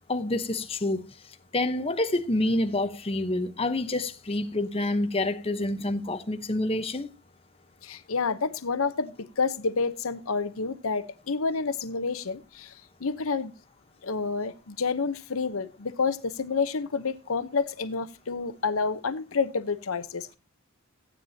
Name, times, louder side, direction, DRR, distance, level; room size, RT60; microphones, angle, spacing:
voice 1, 0.1-1.0 1.5-7.1, left 2 dB, 25° left, 0.9 m, -27 dB
voice 2, 7.8-12.7 13.0-13.5 14.0-20.4, left 4 dB, 70° left, 0.8 m, -29 dB
16.0 x 9.1 x 2.8 m
head